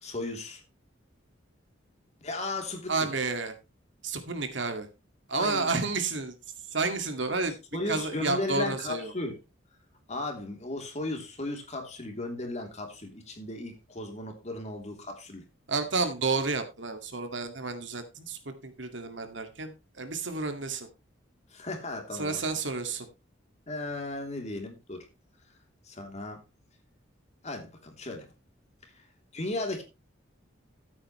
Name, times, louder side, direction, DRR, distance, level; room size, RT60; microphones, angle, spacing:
voice 1, 0.0-0.6 2.2-3.1 5.3-5.7 7.7-9.4 10.1-15.5 21.5-22.4 23.7-25.0 25.8-26.4 27.4-28.3 28.8-29.0 29.3-29.8, left 2 dB, 35° left, 3.2 m, -36 dB
voice 2, 2.9-3.5 4.0-4.9 5.3-6.3 6.7-7.6 7.9-9.1 15.7-20.9 22.2-23.1, right 3 dB, 65° right, 2.1 m, -31 dB
14.0 x 8.6 x 3.2 m
head